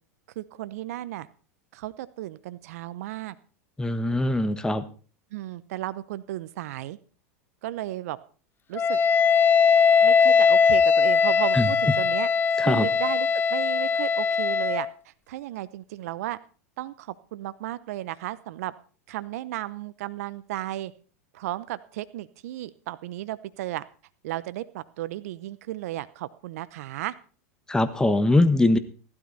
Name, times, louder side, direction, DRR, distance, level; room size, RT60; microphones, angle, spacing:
voice 1, 0.4-1.3 1.7-3.4 5.3-7.0 7.6-8.2 8.7-9.0 10.0-12.3 12.6-16.4 16.8-18.7 19.1-20.9 21.3-23.8 24.2-27.1, right 15 dB, 70° right, 15 dB, 0.8 m, -34 dB
voice 2, 3.8-4.8 11.5-11.7 12.6-12.9 27.7-28.8, left 2 dB, 10° left, 12 dB, 1.4 m, -22 dB
Wind instrument woodwind instrument, 8.8-14.9, left 6 dB, 25° left, 0.7 m, -20 dB
15.0 x 12.5 x 4.2 m, 0.39 s
hypercardioid pair, 100°, 9 cm